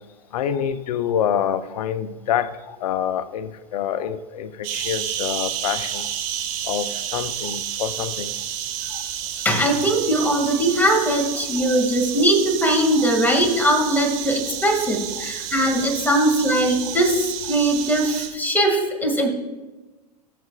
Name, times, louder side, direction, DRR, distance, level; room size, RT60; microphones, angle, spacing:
voice 1, 0.3-6.1 6.7-8.3 8.9-9.0 11.4-11.7 13.0-13.1 15.2-15.3 19.2-19.3, left 9 dB, 65° left, 13 dB, 0.7 m, -27 dB
sound 1, 4.6-18.3, right 10 dB, 50° right, 2.0 m, -30 dB
voice 2, 9.4-19.3, right 1 dB, 10° left, 1 dB, 2.2 m, -20 dB
20.0 x 6.7 x 2.4 m, 1.2 s
hypercardioid pair, 100°, 21 cm